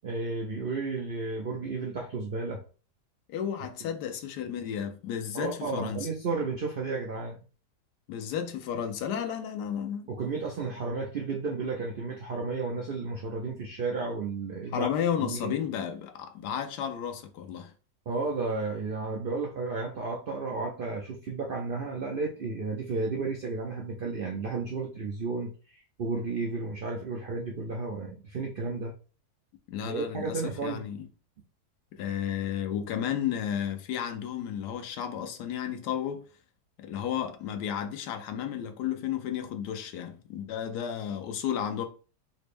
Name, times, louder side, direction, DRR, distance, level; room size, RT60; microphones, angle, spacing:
voice 1, 0.0-2.6 5.3-7.4 10.1-14.9 15.2-15.6 18.1-28.9 29.8-30.8, right 4 dB, 90° right, 0.4 m, -33 dB
voice 2, 3.3-6.1 8.1-10.1 14.7-17.7 29.7-31.1 31.9-36.2 36.8-41.8, left 9 dB, 90° left, 1.2 m, -33 dB
4.2 x 2.1 x 3.3 m
omnidirectional pair, 1.7 m